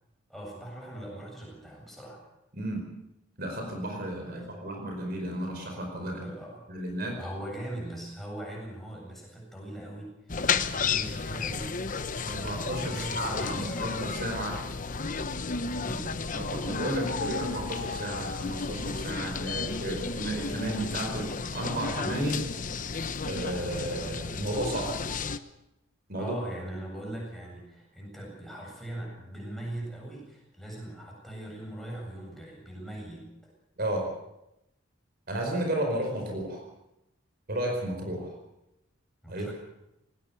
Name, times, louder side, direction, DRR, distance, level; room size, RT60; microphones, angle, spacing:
voice 1, 0.3-2.2 4.2-4.5 6.0-6.7 7.2-13.9 15.7-16.2 26.1-33.3 39.2-39.5, right 1 dB, ahead, -2 dB, 7.9 m, -40 dB
voice 2, 2.5-2.8 3.4-6.3 6.7-7.1 12.2-14.5 16.3-22.4 23.2-24.9 26.1-26.4 33.8-34.1 35.3-36.6 37.5-38.3 39.3-39.5, right 1 dB, 50° right, 2 dB, 4.8 m, -33 dB
sound 1, 10.3-25.4, left 5 dB, 40° left, 0.9 m, -33 dB
19.5 x 19.5 x 6.9 m, 0.88 s
head